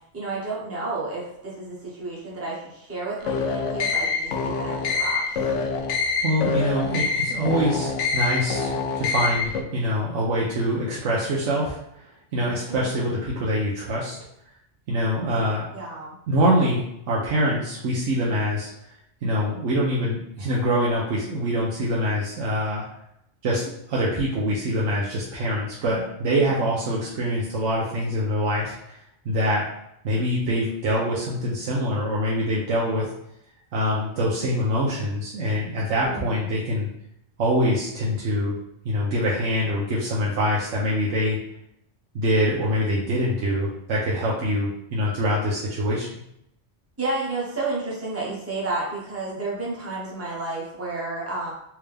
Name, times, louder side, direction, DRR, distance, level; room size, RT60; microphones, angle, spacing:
voice 1, 0.1-4.3 4.6-5.2 12.7-12.9 15.7-16.1 26.3-26.5 35.9-36.4 47.0-51.5, right 2 dB, 15° right, -5 dB, 0.9 m, -31 dB
sound 1, 3.2-9.6, left 4 dB, 80° left, 0.9 m, -25 dB
voice 2, 6.2-11.8 12.0-14.1 14.9-15.6 16.3-18.7 19.2-22.9 23.4-29.0 29.2-29.7 30.0-33.1 33.7-36.9 37.4-38.6 38.8-41.4 42.1-46.2, equal, 85° right, -6 dB, 1.1 m, -24 dB
3.5 x 2.8 x 3.3 m, 0.78 s
omnidirectional pair, 1.2 m